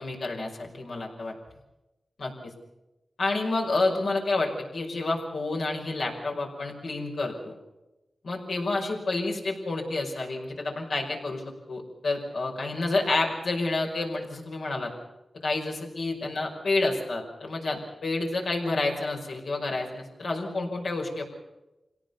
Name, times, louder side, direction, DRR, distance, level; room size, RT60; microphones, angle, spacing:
voice 1, 0.0-1.3 2.2-2.5 3.2-7.6 8.2-11.4 11.7-14.9 15.4-21.3, left 2 dB, 85° left, 0 dB, 5.4 m, -29 dB
26.5 x 17.5 x 7.0 m, 0.99 s
cardioid pair, 60°, 0 cm